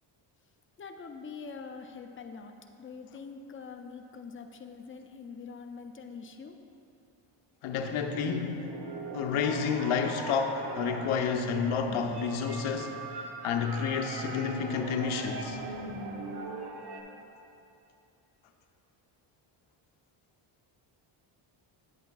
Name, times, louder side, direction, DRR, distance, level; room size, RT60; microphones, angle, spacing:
voice 1, 0.8-6.6, left 5 dB, 30° left, 5 dB, 0.4 m, -44 dB
voice 2, 7.6-8.7 9.1-15.6, left 6 dB, 80° left, 4 dB, 0.6 m, -30 dB
sound 1, 8.1-17.0, right 3 dB, 55° right, 0.9 m, -40 dB
9.4 x 8.2 x 2.3 m, 2.8 s
cardioid pair, 110°, 48 cm